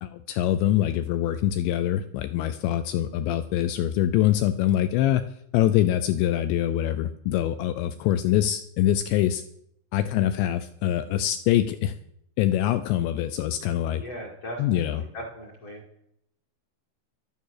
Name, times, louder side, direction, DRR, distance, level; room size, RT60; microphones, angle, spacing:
voice 1, 0.0-5.2 5.5-9.4 9.9-11.9 12.4-14.0 14.6-15.0, left 12 dB, 80° left, 11 dB, 2.6 m, -24 dB
voice 2, 13.9-15.8, equal, 45° left, -2 dB, 2.3 m, -38 dB
12.0 x 11.0 x 6.5 m, 0.73 s
omnidirectional pair, 5.7 m